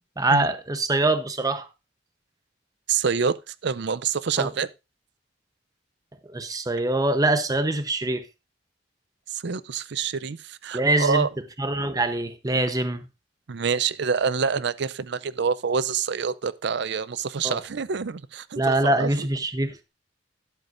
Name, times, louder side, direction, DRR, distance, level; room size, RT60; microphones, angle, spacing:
voice 1, 0.2-1.7 4.4-4.5 6.3-8.2 10.7-11.3 11.6-13.0 17.4-17.6 18.6-19.9, right 2 dB, 20° right, 0.9 m, -24 dB
voice 2, 2.9-4.7 9.3-11.3 13.5-19.1, right 6 dB, 65° right, 0.5 m, -26 dB
12.0 x 11.0 x 2.6 m
head